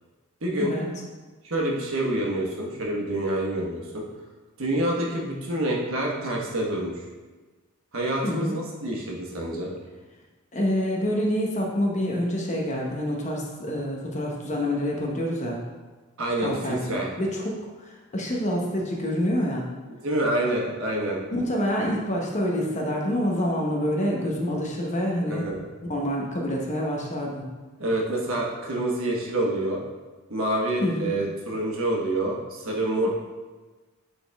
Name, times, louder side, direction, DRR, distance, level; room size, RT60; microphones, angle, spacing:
voice 1, 0.4-0.7 1.4-4.0 4.6-6.9 7.9-9.7 16.2-17.1 19.9-21.2 25.3-25.7 27.8-29.8 30.3-33.1, right 1 dB, 65° right, -2 dB, 1.2 m, -27 dB
voice 2, 8.2-8.6 10.5-15.6 16.4-19.7 21.3-25.5 25.9-27.5 30.8-31.2, equal, 30° left, -1 dB, 0.9 m, -27 dB
8.4 x 4.0 x 3.4 m, 1.3 s
head